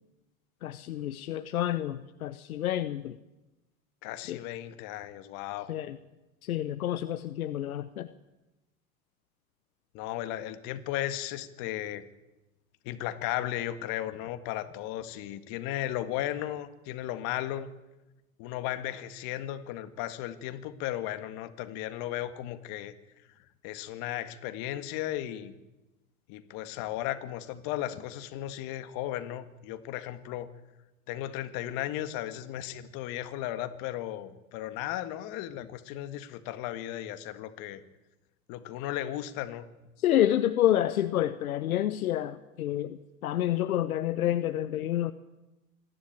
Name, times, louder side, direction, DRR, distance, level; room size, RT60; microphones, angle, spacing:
voice 1, 0.6-3.2 4.3-4.4 5.7-6.0 6.4-8.1 40.0-45.1, left 12 dB, 80° left, 12 dB, 0.9 m, -28 dB
voice 2, 4.0-5.8 9.9-12.0 12.8-17.7 18.4-22.9 23.6-25.6 26.3-30.5 31.1-37.8 38.5-39.7, left 13 dB, 55° left, 10 dB, 1.9 m, -35 dB
26.5 x 11.5 x 9.0 m, 1.0 s
hypercardioid pair, 95°, 42 cm